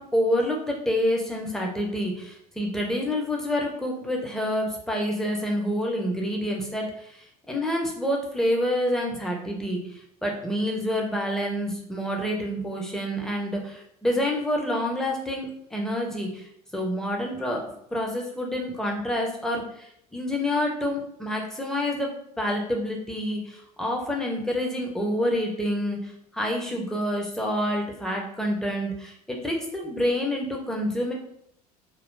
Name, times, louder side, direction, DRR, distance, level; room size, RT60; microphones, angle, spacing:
voice 1, 0.0-17.6 17.9-31.1, equal, ahead, -1 dB, 0.7 m, -28 dB
2.5 x 2.3 x 3.6 m, 0.70 s
figure-of-eight pair, 65°, 20 cm